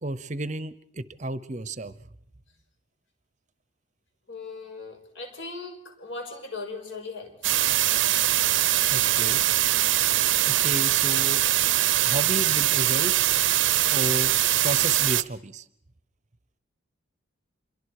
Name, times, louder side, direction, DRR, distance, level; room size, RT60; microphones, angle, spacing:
voice 1, 0.0-2.0 8.9-9.4 10.4-11.4 12.0-13.3 13.9-14.3 14.6-15.7, right 2 dB, 35° right, 15 dB, 0.8 m, -32 dB
voice 2, 4.3-7.3 8.6-9.0, left 3 dB, 70° left, 4 dB, 5.4 m, -39 dB
sound 1, 7.4-15.2, right 14 dB, 65° right, 0.7 m, -22 dB
27.5 x 23.0 x 4.9 m, 0.73 s
head